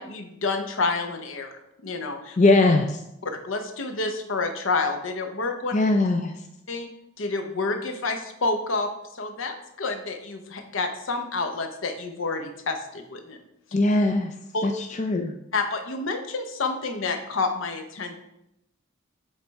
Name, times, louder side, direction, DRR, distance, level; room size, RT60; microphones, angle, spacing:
voice 1, 0.0-1.5 1.8-2.4 3.2-5.7 6.7-6.9 7.2-13.4 14.5-14.7 15.5-18.1, left 3 dB, 70° left, 6 dB, 0.8 m, -29 dB
voice 2, 2.4-3.0 5.7-6.3 13.7-14.3 14.6-15.3, left 2 dB, 35° left, 4 dB, 0.4 m, -21 dB
8.1 x 3.4 x 4.1 m, 0.83 s
head